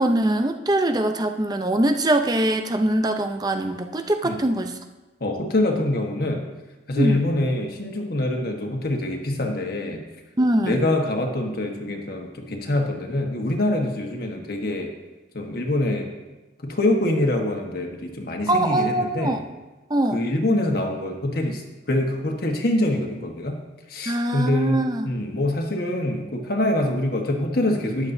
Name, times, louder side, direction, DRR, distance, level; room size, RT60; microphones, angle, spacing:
voice 1, 0.0-4.8 7.0-7.2 10.4-10.8 18.5-19.4 19.9-20.3 24.1-25.1, right 1 dB, 20° right, 6 dB, 0.6 m, -22 dB
voice 2, 5.2-6.4 6.9-10.1 10.6-14.9 15.3-16.1 16.6-19.4 20.1-21.6 21.9-23.6 23.9-28.1, left 1 dB, 55° left, 2 dB, 1.4 m, -24 dB
13.5 x 10.5 x 2.7 m, 1.2 s
head